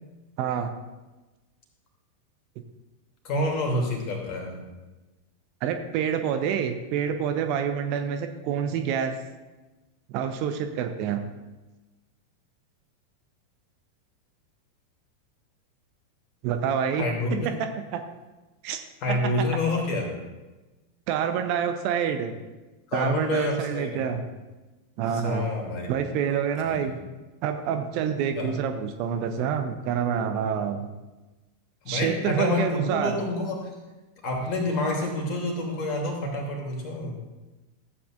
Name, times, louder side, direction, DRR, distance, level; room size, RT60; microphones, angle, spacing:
voice 1, 0.4-0.7 5.6-9.2 10.1-11.2 16.4-18.0 18.6-18.8 19.1-19.5 21.1-22.3 22.9-24.2 25.0-25.5 25.9-27.0 27.4-30.9 31.9-33.2, right 8 dB, 45° right, 7 dB, 0.7 m, -27 dB
voice 2, 3.2-4.7 16.9-17.5 19.0-20.1 22.9-24.2 25.1-25.9 26.6-26.9 28.3-28.5 31.8-33.7 34.2-37.1, left 2 dB, 40° left, 0 dB, 2.7 m, -28 dB
15.0 x 8.5 x 2.5 m, 1.1 s
figure-of-eight pair, 90°, 0 cm